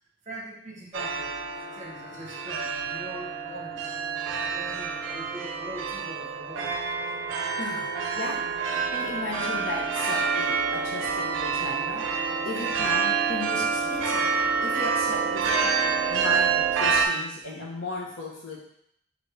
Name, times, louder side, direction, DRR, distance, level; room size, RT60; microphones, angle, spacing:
voice 1, 0.2-1.3 1.7-3.9 4.5-6.7, right 1 dB, 40° right, -2 dB, 1.0 m, -42 dB
sound 1, 0.9-17.1, right 5 dB, 80° right, 0.5 m, -27 dB
sound 2, 1.0-17.3, left 1 dB, 15° left, 0.7 m, -50 dB
voice 2, 7.6-8.4 8.9-12.0 12.4-14.3 14.6-15.7 16.1-18.6, left 2 dB, 80° left, -2 dB, 1.1 m, -35 dB
4.0 x 3.2 x 3.4 m, 0.71 s
head